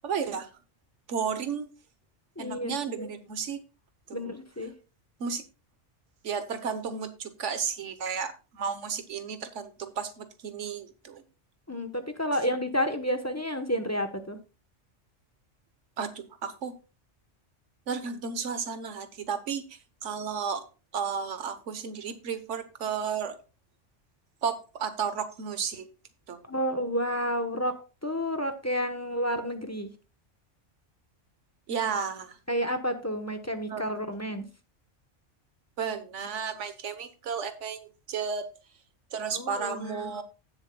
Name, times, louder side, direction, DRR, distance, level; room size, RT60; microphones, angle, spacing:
voice 1, 0.0-0.5 1.1-1.7 2.4-3.6 4.1-4.4 5.2-5.4 6.2-11.2 16.0-16.7 17.9-19.6 20.0-20.6 20.9-23.4 24.4-25.9 26.3-26.4 31.7-32.4 33.7-33.8 35.8-38.5 39.1-40.2, right 6 dB, 75° right, 10 dB, 1.3 m, -33 dB
voice 2, 2.4-3.1 4.1-4.7 11.7-14.4 26.5-27.7 28.0-29.9 32.5-34.5 39.3-40.2, equal, 15° left, 7 dB, 0.8 m, -30 dB
16.0 x 7.2 x 2.2 m, 0.31 s
omnidirectional pair, 1.2 m